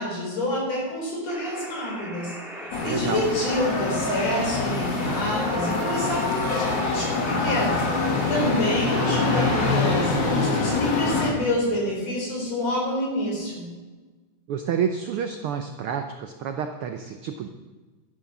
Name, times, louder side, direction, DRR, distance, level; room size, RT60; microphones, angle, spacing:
voice 1, 0.0-13.7, left 1 dB, 60° left, -2 dB, 5.4 m, -28 dB
sound 1, 1.3-9.7, equal, ahead, 1.2 m, -40 dB
sound 2, 2.7-11.3, left 3 dB, 40° left, 2.3 m, -25 dB
voice 2, 2.8-3.3 14.5-17.5, right 7 dB, 85° right, 6 dB, 1.2 m, -29 dB
13.0 x 10.0 x 6.0 m, 1.3 s
omnidirectional pair, 3.4 m